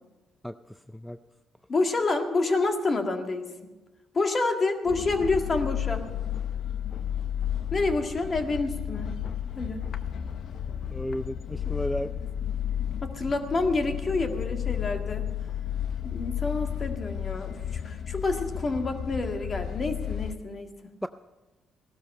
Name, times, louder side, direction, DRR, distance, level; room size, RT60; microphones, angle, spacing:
voice 1, 1.7-3.7 4.1-6.1 7.7-9.2 9.6-9.9 13.0-15.3 16.0-20.9, left 3 dB, 40° left, 5 dB, 1.8 m, -28 dB
sound 1, 4.9-20.4, left 9 dB, 65° left, 0.7 m, -32 dB
voice 2, 10.9-12.1 21.0-21.1, equal, 5° left, 11 dB, 0.4 m, -32 dB
16.5 x 12.5 x 5.4 m, 1.1 s
cardioid pair, 90°, 0 cm